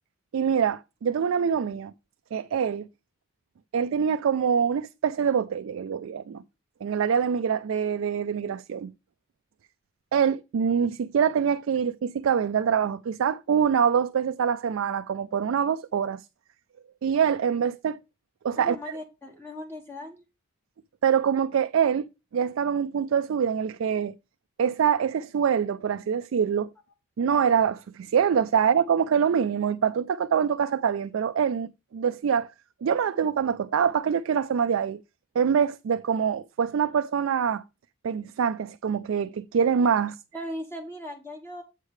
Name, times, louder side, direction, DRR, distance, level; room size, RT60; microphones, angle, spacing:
voice 1, 0.3-1.9 2.3-2.9 3.7-6.4 6.8-8.9 10.1-16.2 17.0-18.0 18.4-18.8 21.0-22.1 22.3-24.2 24.6-26.7 27.2-32.5 32.8-35.0 35.4-37.6 38.0-40.2, right 7 dB, 70° right, 0.3 m, -25 dB
voice 2, 18.5-20.2 40.3-41.6, equal, 10° left, 1.2 m, -38 dB
8.2 x 3.2 x 6.4 m
head